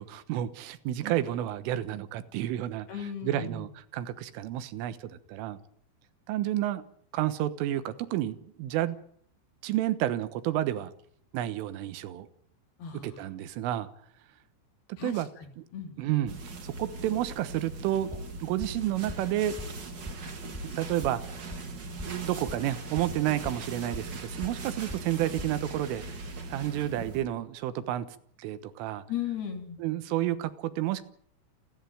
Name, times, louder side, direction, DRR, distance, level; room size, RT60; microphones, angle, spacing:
voice 1, 0.0-2.9 3.2-5.6 6.3-6.8 7.1-9.0 9.6-10.9 11.3-12.3 13.0-13.9 15.0-15.3 15.6-15.7 16.0-16.3 16.6-18.1 18.4-19.6 20.6-21.3 22.0-26.0 26.5-28.1 28.4-29.0 29.8-31.0, right 13 dB, 85° right, 12 dB, 3.8 m, -30 dB
voice 2, 2.9-3.7 12.8-13.2 15.0-16.0 29.1-29.8, left 9 dB, 55° left, 4 dB, 4.9 m, -37 dB
sound 1, 16.3-27.2, right 3 dB, 45° right, 1.5 m, -40 dB
sound 2, 18.1-18.2 18.6-18.7 19.1-19.2 19.6-19.7 20.1-20.2 20.5-20.6 21.0-21.1 21.5-21.6 22.0-22.1 22.5-22.6 23.0-23.1 23.4-23.5 23.9-24.0 24.4-24.5 24.9-25.0 25.4-25.5, left 1 dB, 5° left, 4.3 m, -38 dB
29.0 x 10.5 x 9.3 m, 0.63 s
omnidirectional pair, 5.6 m